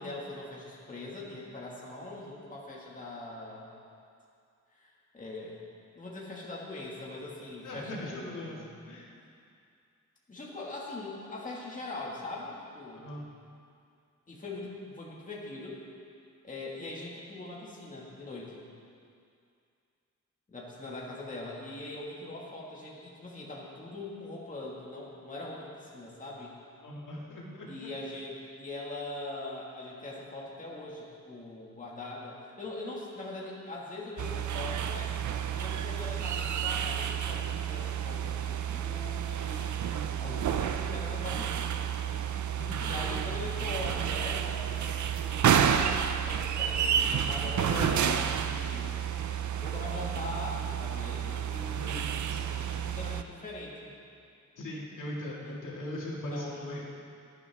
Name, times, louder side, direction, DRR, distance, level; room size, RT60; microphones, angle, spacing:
voice 1, 0.0-3.7 4.7-5.6 6.0-8.7 10.3-13.2 14.3-15.8 16.4-18.6 20.5-26.6 27.7-35.1 35.6-39.8 40.2-41.9 42.7-49.0 49.6-53.9 55.4-55.6 56.3-56.8, left 2 dB, 25° left, -4 dB, 1.9 m, -42 dB
voice 2, 7.6-8.6 8.9-9.1 12.9-13.3 26.8-27.9 39.9-40.3 42.5-43.3 47.7-48.1 51.7-52.6 54.6-56.8, left 1 dB, 80° left, -4 dB, 2.3 m, -40 dB
sound 1, 34.2-53.2, right 8 dB, 70° right, 0.6 m, -30 dB
17.5 x 11.5 x 3.5 m, 2.4 s
wide cardioid pair, 175°, 31 cm